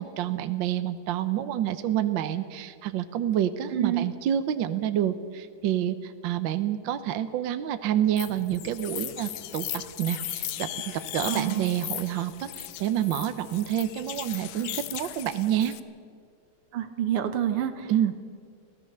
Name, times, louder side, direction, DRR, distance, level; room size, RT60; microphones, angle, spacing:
voice 1, 0.0-15.8 17.9-18.1, right 11 dB, 65° right, 11 dB, 1.4 m, -28 dB
voice 2, 3.7-4.0 11.3-11.7 16.7-17.9, right 10 dB, 85° right, 9 dB, 2.2 m, -28 dB
sound 1, 8.2-15.8, left 13 dB, 70° left, 1.4 m, -37 dB
24.5 x 16.5 x 6.8 m, 2.1 s
omnidirectional pair, 2.4 m